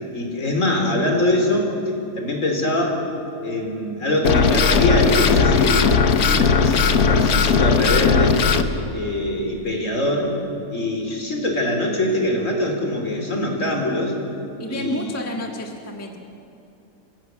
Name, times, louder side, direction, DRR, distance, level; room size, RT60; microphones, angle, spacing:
voice 1, 0.1-1.8 2.2-3.0 3.4-8.4 8.9-10.4 10.7-14.2 14.7-15.2, left 1 dB, 50° left, 2 dB, 3.9 m, -23 dB
sound 1, 4.2-8.6, left 5 dB, 65° left, 1.6 m, -17 dB
voice 2, 14.6-16.2, left 1 dB, 10° left, 1 dB, 1.5 m, -30 dB
27.5 x 16.0 x 9.3 m, 2.8 s
omnidirectional pair, 1.7 m